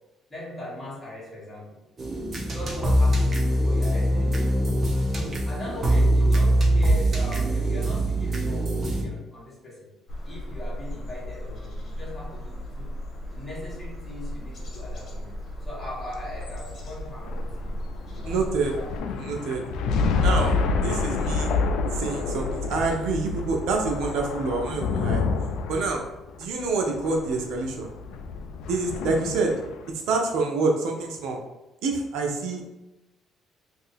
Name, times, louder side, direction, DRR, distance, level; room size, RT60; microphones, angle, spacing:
voice 1, 0.3-1.8 2.4-3.4 3.6-4.3 5.1-9.9 10.3-12.9 13.3-15.3 15.6-17.8 18.1-18.4 18.7-19.2, left 1 dB, 15° left, -7 dB, 1.4 m, -40 dB
sound 1, 2.0-9.0, right 1 dB, 35° right, 0.8 m, -22 dB
sound 2, 10.1-19.0, equal, 50° left, 1.1 m, -36 dB
sound 3, 16.3-29.9, left 4 dB, 80° left, 0.3 m, -28 dB
voice 2, 18.2-18.7 19.2-19.6 20.2-20.5 20.8-21.5 21.9-25.2 25.7-26.0 26.4-27.9 28.7-29.5 30.1-31.4 31.8-32.7, right 3 dB, 80° right, 2 dB, 0.7 m, -27 dB
2.7 x 2.7 x 4.1 m, 0.98 s
cardioid pair, 110°, 0 cm